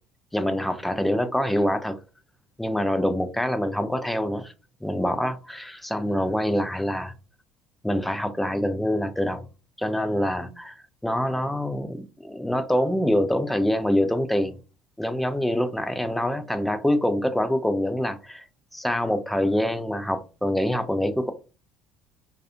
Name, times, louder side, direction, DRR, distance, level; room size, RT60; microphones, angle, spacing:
voice 1, 0.3-2.0 2.6-4.5 4.8-7.1 7.8-9.4 9.8-14.6 15.0-18.5 18.7-21.3, left 1 dB, 5° left, 0.4 m, -25 dB
2.4 x 2.3 x 2.6 m
figure-of-eight pair, 60°, 2 cm